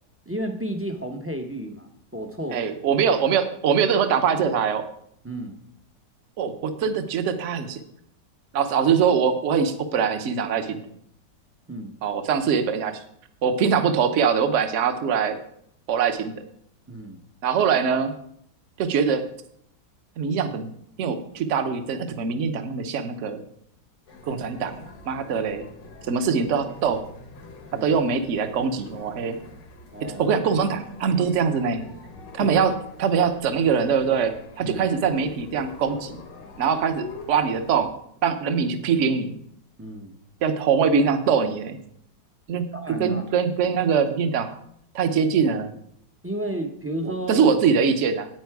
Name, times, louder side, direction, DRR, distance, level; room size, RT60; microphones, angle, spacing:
voice 1, 0.3-2.6 5.2-5.6 11.7-12.0 16.9-17.2 27.7-28.0 29.9-30.3 32.4-32.5 34.6-34.9 39.8-40.2 42.7-43.3 46.2-47.5, right 1 dB, 20° right, 5 dB, 0.4 m, -32 dB
voice 2, 2.5-4.8 6.4-7.8 8.5-10.8 12.0-13.0 13.4-15.4 15.9-16.3 17.4-18.1 18.8-19.2 20.2-20.7 21.0-23.4 24.2-24.8 25.1-25.6 26.1-27.0 27.8-29.4 30.2-31.8 32.3-32.7 33.0-36.2 36.6-37.9 38.2-39.3 40.4-41.8 42.5-42.7 43.0-44.6 44.9-45.7 47.0-48.3, right 6 dB, 50° right, 9 dB, 1.0 m, -23 dB
sound 1, 24.1-37.9, left 3 dB, 85° left, 2.0 m, -45 dB
9.2 x 8.8 x 4.7 m, 0.70 s
omnidirectional pair, 1.9 m